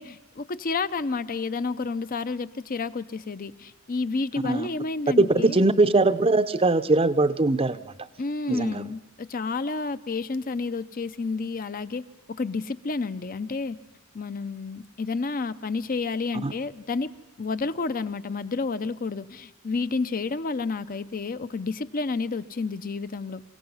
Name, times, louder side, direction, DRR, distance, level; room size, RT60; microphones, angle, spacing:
voice 1, 0.0-5.6 8.2-12.0 12.3-13.8 14.1-17.1 17.4-23.4, left 4 dB, 40° left, 13 dB, 0.6 m, -30 dB
voice 2, 5.2-8.1 8.5-8.9 16.4-16.5, right 2 dB, 25° right, 12 dB, 0.6 m, -21 dB
28.0 x 16.5 x 5.6 m, 1.0 s
head